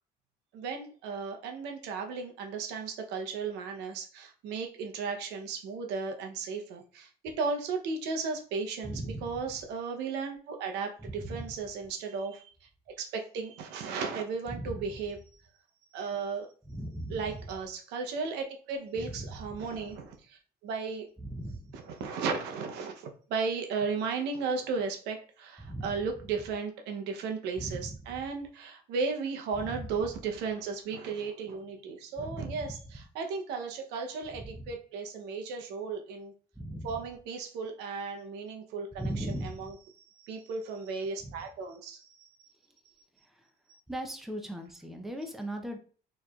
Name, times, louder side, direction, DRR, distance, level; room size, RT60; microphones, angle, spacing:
voice 1, 0.5-12.5 13.0-15.2 15.9-16.5 17.1-21.1 21.7-36.3 36.8-39.7 40.2-42.3, right 5 dB, 90° right, 4 dB, 0.7 m, -35 dB
voice 2, 8.8-9.4 11.0-11.5 14.5-14.9 16.6-17.4 19.0-19.3 21.2-21.8 25.6-26.0 27.6-28.0 29.5-29.8 32.2-32.7 34.4-34.7 36.6-36.9 39.0-39.7 41.2-41.3 43.3-43.4 43.9-45.8, right 1 dB, ahead, 4 dB, 0.6 m, -38 dB
4.6 x 3.1 x 2.3 m, 0.41 s
cardioid pair, 110°, 17 cm